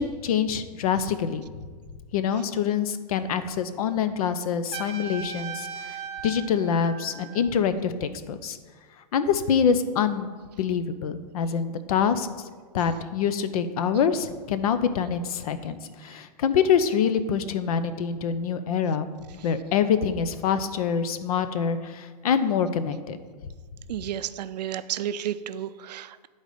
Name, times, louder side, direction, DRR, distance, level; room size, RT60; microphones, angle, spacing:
voice 1, 0.0-1.5 2.1-8.6 9.1-10.3 10.6-12.3 12.7-19.1 19.4-23.2, left 7 dB, 60° left, 11 dB, 0.6 m, -25 dB
Trumpet, 4.7-7.6, right 7 dB, 45° right, 0.7 m, -38 dB
voice 2, 23.9-26.3, right 10 dB, 80° right, 14 dB, 0.4 m, -32 dB
9.7 x 4.0 x 5.0 m, 1.5 s
hypercardioid pair, 150°, 21 cm